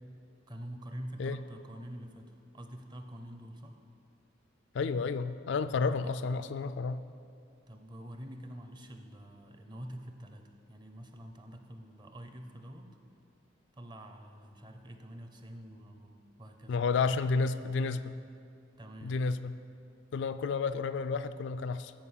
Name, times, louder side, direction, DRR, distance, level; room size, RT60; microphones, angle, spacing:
voice 1, 0.5-3.8 5.9-6.1 7.7-13.0 13.7-16.8 18.8-19.2, equal, 20° right, 6 dB, 0.6 m, -46 dB
voice 2, 4.7-7.0 16.7-18.1 19.0-19.5 20.1-21.9, left 4 dB, 60° left, 12 dB, 0.3 m, -31 dB
14.0 x 5.2 x 5.7 m, 2.5 s
head